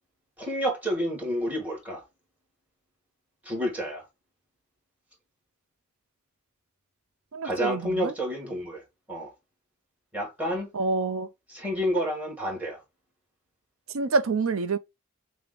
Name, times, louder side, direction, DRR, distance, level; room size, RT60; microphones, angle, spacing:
voice 1, 0.4-2.0 3.4-4.0 7.4-8.8 9.1-9.3 10.1-10.7 11.5-12.8, equal, 5° right, 1.6 m, -29 dB
voice 2, 7.3-8.1 10.7-11.3 13.9-14.8, right 4 dB, 75° right, 0.5 m, -27 dB
5.9 x 2.1 x 3.6 m
head